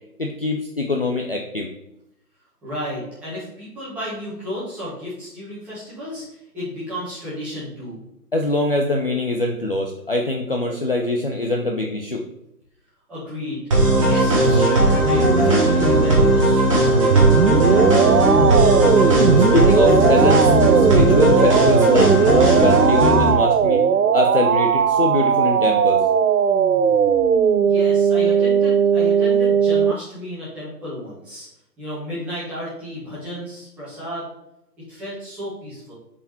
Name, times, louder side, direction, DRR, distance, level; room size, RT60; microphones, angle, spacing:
voice 1, 0.2-1.7 8.3-12.2 19.5-23.9 24.1-26.0, left 2 dB, 35° left, 1 dB, 0.6 m, -23 dB
voice 2, 2.6-8.0 13.1-13.6 13.9-17.5 27.6-31.5 31.8-34.3 34.9-35.9, left 1 dB, 5° right, -12 dB, 1.6 m, -33 dB
sound 1, 13.7-23.3, right 1 dB, 20° right, 1.4 m, -16 dB
sound 2, 17.1-29.9, right 7 dB, 65° right, 0.5 m, -18 dB
7.0 x 4.8 x 4.3 m, 0.84 s
figure-of-eight pair, 165°, 49 cm